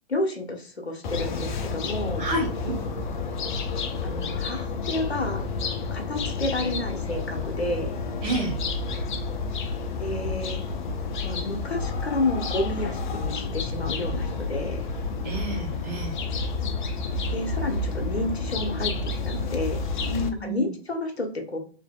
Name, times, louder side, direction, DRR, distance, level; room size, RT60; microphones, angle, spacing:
voice 1, 0.1-2.2 4.0-5.5 5.9-8.0 10.0-10.6 11.2-14.9 17.3-18.9 19.3-19.8 20.4-21.6, left 2 dB, 85° left, 3 dB, 0.8 m, -30 dB
sound 1, 1.0-20.3, left 3 dB, 50° left, 0.5 m, -30 dB
voice 2, 2.2-2.8 8.2-8.5 15.2-16.2 20.0-20.8, right 1 dB, 25° right, -2 dB, 1.2 m, -29 dB
3.3 x 2.7 x 2.2 m, 0.43 s
figure-of-eight pair, 110°, 31 cm